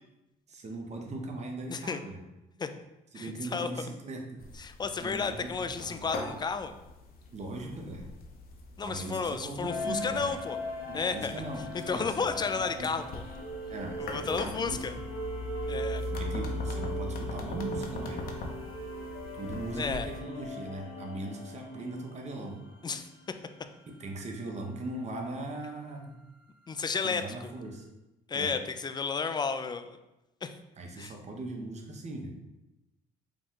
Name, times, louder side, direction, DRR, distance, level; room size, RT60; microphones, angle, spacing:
voice 1, 0.5-2.2 3.1-4.4 5.0-6.0 7.3-8.0 8.8-10.4 10.9-12.9 13.7-14.8 15.5-15.7 16.1-18.3 19.4-22.6 23.9-26.2 27.0-27.9 28.3-28.6 30.8-32.3, right 2 dB, 40° right, 2 dB, 0.9 m, -39 dB
voice 2, 1.7-2.0 2.6-2.7 3.1-3.7 4.6-6.7 8.8-10.6 10.9-11.4 11.9-13.2 14.0-14.9 15.7-16.0 19.8-20.1 22.8-23.1 26.7-27.3 28.3-30.0 30.4-30.5 31.0-31.1, left 5 dB, 25° left, 9 dB, 0.4 m, -32 dB
sound 1, 4.4-20.2, left 2 dB, 55° left, 0.8 m, -41 dB
sound 2, 9.6-23.8, equal, 90° left, 0.8 m, -40 dB
5.0 x 2.3 x 3.7 m, 0.97 s
supercardioid pair, 70°, 18 cm